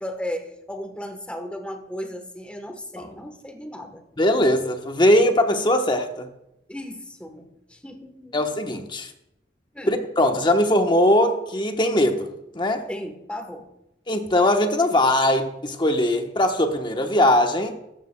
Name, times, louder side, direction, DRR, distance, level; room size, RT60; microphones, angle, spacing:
voice 1, 0.0-4.0 6.7-8.4 9.7-10.0 12.9-13.7, equal, 5° left, 1.1 m, -35 dB
voice 2, 4.2-6.3 8.3-9.1 9.9-12.3 12.5-12.9 14.1-17.7, left 1 dB, 25° left, 1.0 m, -20 dB
14.0 x 13.0 x 2.2 m
head